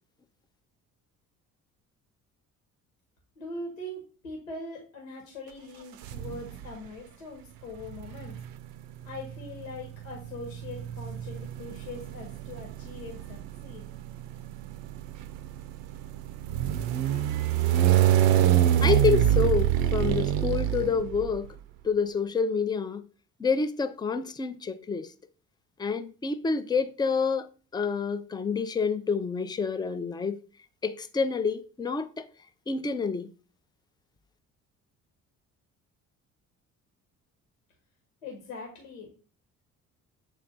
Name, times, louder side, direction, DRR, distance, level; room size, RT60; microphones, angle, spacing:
voice 1, 3.3-8.4 9.0-13.9 38.2-39.1, left 2 dB, 75° left, 1.5 m, -42 dB
sound 1, 6.0-6.7 7.8-21.5, right 12 dB, 60° right, 0.6 m, -26 dB
voice 2, 18.8-21.5 21.8-23.0 23.4-25.1 25.8-30.4 30.8-32.3 32.7-33.3, left 5 dB, 10° left, 0.5 m, -28 dB
8.3 x 3.3 x 3.8 m
figure-of-eight pair, 50°, 41 cm